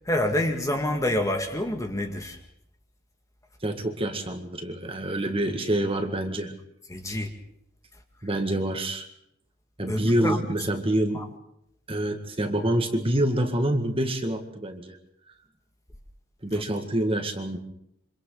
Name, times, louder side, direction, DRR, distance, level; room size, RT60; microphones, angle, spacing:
voice 1, 0.1-2.4 6.9-7.3 9.9-10.4 11.1-11.2, left 1 dB, 15° left, 1.9 m, -27 dB
voice 2, 3.6-6.5 8.2-9.1 9.8-11.2 11.9-15.0 16.4-17.6, right 1 dB, 25° right, 1.9 m, -26 dB
27.5 x 25.5 x 3.9 m
head